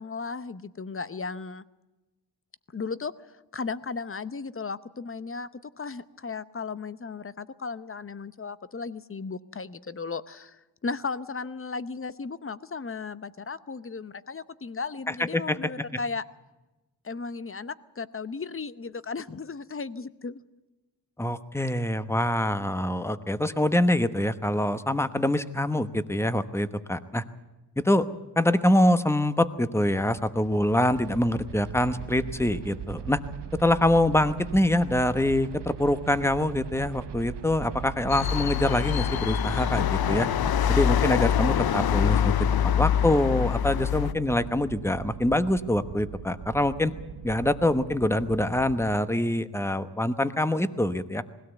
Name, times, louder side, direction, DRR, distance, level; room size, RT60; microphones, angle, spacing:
voice 1, 0.0-1.7 2.7-3.1 3.5-5.5 5.8-16.2 17.0-20.4, left 4 dB, 30° left, 15 dB, 0.8 m, -35 dB
voice 2, 15.1-15.6 21.2-27.2 27.8-28.1 28.4-33.2 33.5-40.3 40.7-42.3 42.8-46.9 47.2-51.2, left 1 dB, 5° left, 12 dB, 1.0 m, -25 dB
sound 1, 29.6-49.0, right 9 dB, 85° right, 0.8 m, -40 dB
sound 2, 38.1-44.1, left 9 dB, 60° left, 0.6 m, -25 dB
20.5 x 16.5 x 8.1 m, 1.1 s
wide cardioid pair, 85°, 41 cm